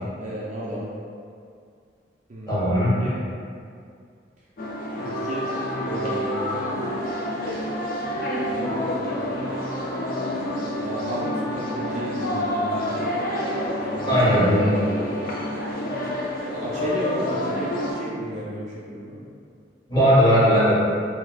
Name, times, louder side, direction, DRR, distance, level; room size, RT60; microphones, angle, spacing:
voice 1, 0.2-0.9 2.3-2.7 3.0-3.2 5.0-5.5 5.9-6.6 8.5-9.4 10.8-13.2 13.8-14.4 16.5-19.2, equal, 40° right, -5 dB, 0.4 m, -33 dB
voice 2, 2.5-2.9 14.1-14.8 19.9-20.7, equal, 25° left, -11 dB, 1.3 m, -18 dB
sound 1, 4.6-17.9, left 1 dB, 50° left, 0.4 m, -28 dB
3.3 x 2.7 x 2.4 m, 2.3 s
head